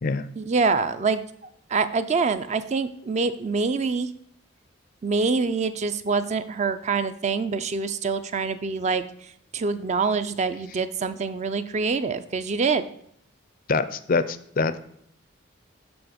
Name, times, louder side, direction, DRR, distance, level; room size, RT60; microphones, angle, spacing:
voice 1, 0.4-4.1 5.0-12.9, right 4 dB, 35° right, 11 dB, 0.4 m, -25 dB
voice 2, 13.7-14.8, left 4 dB, 45° left, 13 dB, 0.4 m, -24 dB
7.0 x 5.9 x 5.1 m, 0.68 s
head